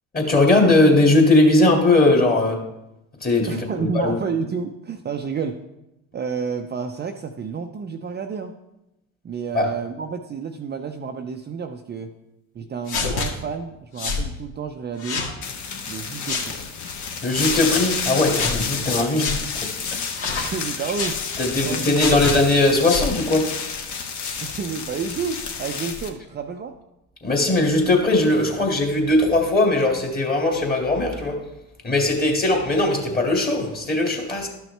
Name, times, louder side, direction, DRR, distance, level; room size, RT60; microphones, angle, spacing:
voice 1, 0.1-2.6 3.2-4.2 9.5-9.7 17.2-19.6 19.9-20.4 21.4-23.6 27.2-31.5 31.8-34.5, left 2 dB, 20° left, 2.2 m, -19 dB
voice 2, 3.5-5.6 6.1-8.5 9.2-12.1 12.5-15.3 15.9-16.6 20.4-21.2 21.6-22.2 24.4-26.7, right 6 dB, 25° right, 0.6 m, -30 dB
sound 1, 12.9-13.3 14.0-14.3 15.0-15.3 16.3-16.5 17.3-17.6 18.4-18.6 19.2-19.4 20.2-20.5 20.9-21.2 21.9-22.4 22.8-23.1, left 4 dB, 65° left, 1.8 m, -26 dB
sound 2, 15.4-26.1, left 5 dB, 50° left, 1.3 m, -30 dB
12.0 x 6.1 x 3.3 m
hypercardioid pair, 75°, 40 cm